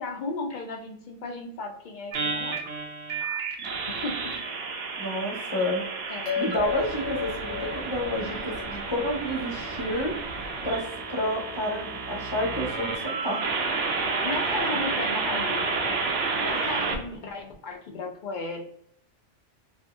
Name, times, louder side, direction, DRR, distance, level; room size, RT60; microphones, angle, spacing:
voice 1, 0.0-2.6 3.9-4.3 6.1-6.3 8.2-8.5 14.2-15.9 16.4-18.6, left 3 dB, 55° left, 2 dB, 0.5 m, -35 dB
sound 1, 2.1-17.0, right 4 dB, 80° right, 0.9 m, -31 dB
voice 2, 5.0-5.8 6.3-10.1 10.6-13.4, equal, 25° left, -3 dB, 0.8 m, -30 dB
sound 2, 6.3-10.9, left 10 dB, 80° left, 0.9 m, -36 dB
2.6 x 2.6 x 2.4 m, 0.68 s
omnidirectional pair, 1.2 m